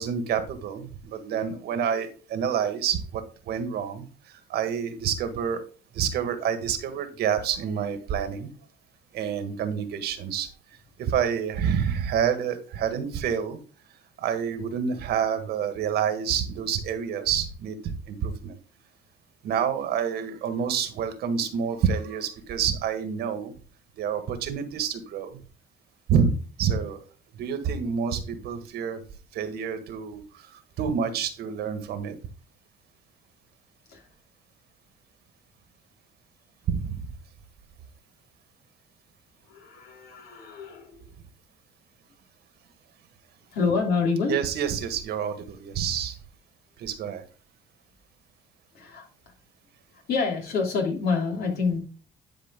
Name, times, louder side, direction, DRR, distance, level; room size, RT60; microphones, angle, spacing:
voice 1, 0.0-5.6 5.9-8.5 9.1-10.5 11.0-13.6 14.2-18.5 19.4-23.5 24.0-25.4 26.1-26.3 26.6-27.0 27.3-29.0 29.3-32.2 36.7-37.1 44.3-46.1 46.8-47.2, right 7 dB, 70° right, 8 dB, 1.6 m, -28 dB
voice 2, 39.5-41.0 43.5-44.4 48.7-49.0 49.9-51.8, left 4 dB, 65° left, 1 dB, 3.1 m, -27 dB
11.0 x 4.9 x 3.7 m, 0.37 s
cardioid pair, 110°, 17 cm